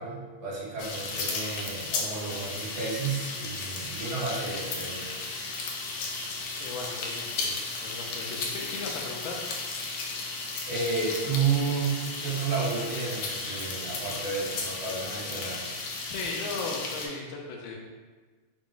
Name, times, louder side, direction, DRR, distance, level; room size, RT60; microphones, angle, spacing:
voice 1, 0.0-5.1 10.7-15.6, right 4 dB, 55° right, -7 dB, 1.3 m, -31 dB
sound 1, 0.8-17.1, left 3 dB, 90° left, 1.6 m, -35 dB
voice 2, 6.6-9.4 16.1-17.8, left 3 dB, 70° left, 0 dB, 1.3 m, -37 dB
4.7 x 2.0 x 3.7 m, 1.4 s
omnidirectional pair, 2.4 m